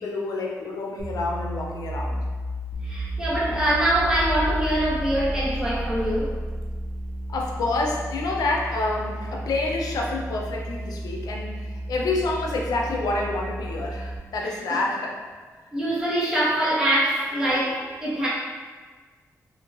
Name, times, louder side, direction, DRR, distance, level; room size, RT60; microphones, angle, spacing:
voice 1, 0.0-2.3 7.3-15.2, left 2 dB, 85° left, 0 dB, 0.5 m, -28 dB
sound 1, 1.0-7.2, left 1 dB, 35° right, 0.8 m, -32 dB
sound 2, 2.7-14.2, right 1 dB, 15° left, 0.5 m, -34 dB
voice 2, 2.8-6.3 15.7-18.3, right 1 dB, 10° right, -9 dB, 1.0 m, -24 dB
2.8 x 2.4 x 3.0 m, 1.5 s
cardioid pair, 90°, 6 cm